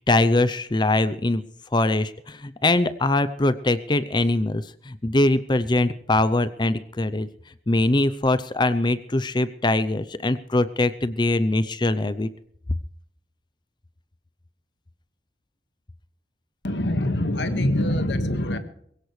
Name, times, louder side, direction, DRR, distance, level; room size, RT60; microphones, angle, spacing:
voice 1, 0.0-1.4 1.7-7.3 7.7-12.3, left 2 dB, 25° left, 14 dB, 0.6 m, -22 dB
voice 2, 16.6-18.6, left 1 dB, 75° left, 9 dB, 1.7 m, -24 dB
21.5 x 17.0 x 3.3 m, 0.68 s
head